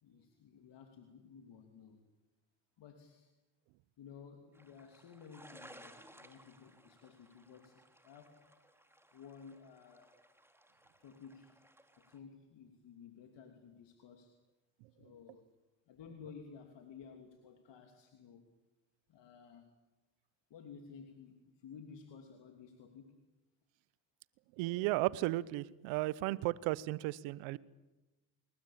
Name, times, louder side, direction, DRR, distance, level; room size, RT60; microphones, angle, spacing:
voice 1, 0.0-2.0 2.8-3.3 4.0-8.4 9.1-10.2 11.0-11.6 12.0-14.3 15.0-15.5 15.9-18.5 19.1-19.7 20.5-23.2, left 6 dB, 70° left, 5 dB, 3.1 m, -54 dB
sound 1, 4.5-12.2, right 1 dB, 5° right, 3.3 m, -60 dB
voice 2, 24.6-27.6, right 18 dB, 85° right, 21 dB, 0.9 m, -34 dB
29.5 x 20.5 x 8.8 m, 1.1 s
supercardioid pair, 55°, 45 cm